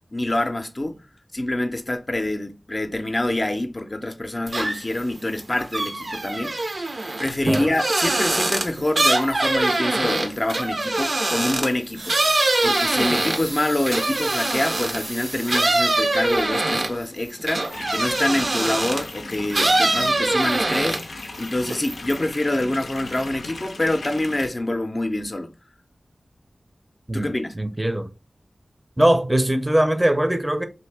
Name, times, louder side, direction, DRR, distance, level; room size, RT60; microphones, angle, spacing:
voice 1, 0.1-1.0 1.3-6.7 7.2-12.2 12.6-25.5 27.1-27.6, left 1 dB, 40° left, 0.5 m, -26 dB
sound 1, 4.5-5.0 5.3-15.1 15.5-19.1 19.5-21.2 21.5-22.2, right 2 dB, 60° right, 0.5 m, -23 dB
sound 2, 11.9-16.9 17.5-17.7, right 2 dB, 80° right, 0.9 m, -36 dB
sound 3, 17.7-24.5, left 3 dB, 90° left, 0.4 m, -37 dB
voice 2, 27.5-28.1 29.0-30.7, right 1 dB, 20° right, 0.5 m, -21 dB
2.7 x 2.6 x 3.3 m
cardioid pair, 45°, 0 cm